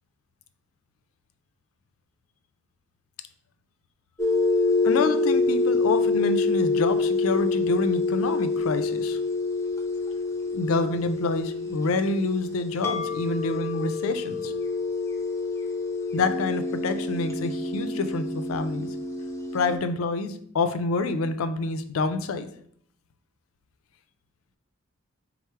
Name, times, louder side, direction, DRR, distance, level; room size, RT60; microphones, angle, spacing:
sound 1, 4.2-19.8, left 3 dB, 15° left, 0.6 m, -27 dB
voice 1, 4.8-9.2 10.5-14.5 16.1-18.9 19.5-22.5, left 3 dB, 75° left, 10 dB, 0.4 m, -27 dB
4.4 x 2.0 x 4.5 m, 0.64 s
head